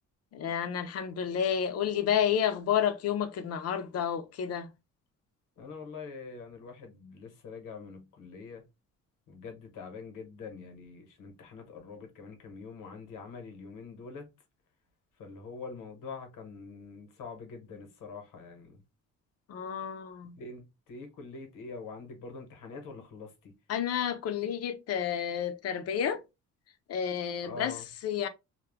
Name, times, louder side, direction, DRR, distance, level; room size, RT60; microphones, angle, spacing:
voice 1, 0.3-4.7 19.5-20.4 23.7-26.2 26.9-28.3, left 9 dB, 55° left, 0.5 m, -30 dB
voice 2, 5.6-8.6 9.3-14.3 15.2-18.8 20.4-23.5 27.4-27.9, left 4 dB, 80° left, 1.0 m, -44 dB
2.3 x 2.1 x 3.3 m
cardioid pair, 140°, 31 cm